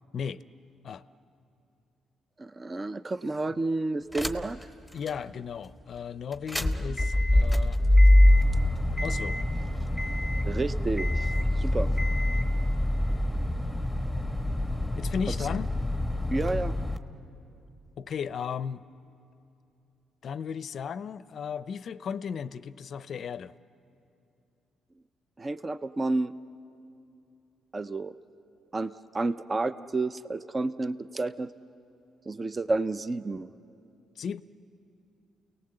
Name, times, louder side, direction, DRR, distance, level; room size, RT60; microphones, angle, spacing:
voice 1, 2.4-4.6 10.4-11.9 16.3-16.7 25.4-26.3 27.7-28.2 28.7-31.5 32.3-33.5, right 2 dB, 30° right, 14 dB, 0.6 m, -30 dB
sound 1, 4.1-4.6 5.1-5.2 6.3-17.0, left 1 dB, ahead, 1.1 m, -24 dB
voice 2, 4.9-7.8 9.0-9.4 14.9-15.7 18.0-18.8 20.2-23.5 34.2-34.4, left 7 dB, 60° left, 16 dB, 0.5 m, -35 dB
29.5 x 18.5 x 7.7 m, 2.7 s
cardioid pair, 90°, 0 cm